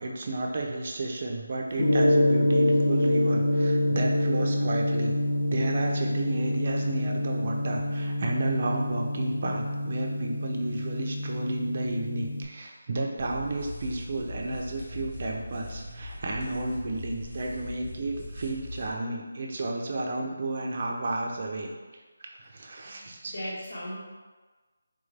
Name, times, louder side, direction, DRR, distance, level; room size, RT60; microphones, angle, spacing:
voice 1, 0.0-5.2 5.5-21.7 22.2-23.3, right 2 dB, 35° right, 1 dB, 0.4 m, -32 dB
Gong, 1.8-12.4, left 1 dB, 80° left, 0.5 m, -26 dB
sound 1, 13.2-18.9, left 1 dB, 20° left, 0.8 m, -40 dB
voice 2, 22.8-24.0, equal, 55° left, -6 dB, 1.0 m, -38 dB
3.6 x 2.5 x 3.2 m, 1.3 s
figure-of-eight pair, 175°, 0 cm